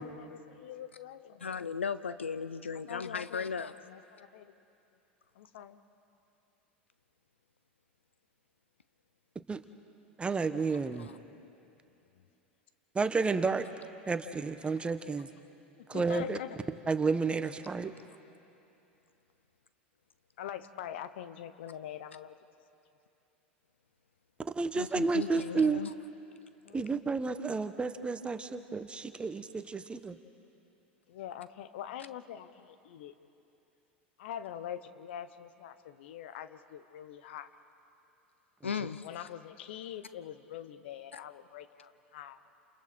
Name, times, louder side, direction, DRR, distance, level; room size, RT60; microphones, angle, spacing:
voice 1, 0.0-1.5 2.9-3.5 3.9-4.5 5.3-5.8 12.2-12.3 15.8-16.6 20.4-22.3 26.6-26.8 31.1-33.1 34.2-37.5 39.0-42.4, left 10 dB, 65° left, 12 dB, 1.1 m, -44 dB
voice 2, 1.4-3.7 11.0-11.1 24.8-25.9 38.6-39.0, left 6 dB, 85° left, 14 dB, 0.7 m, -36 dB
voice 3, 10.2-11.1 12.9-13.7 14.1-15.3 15.9-16.4 16.9-17.9 24.5-25.8 26.7-30.2, right 4 dB, 15° right, 10 dB, 1.2 m, -31 dB
29.5 x 28.5 x 4.4 m, 2.9 s
hypercardioid pair, 85°, 6 cm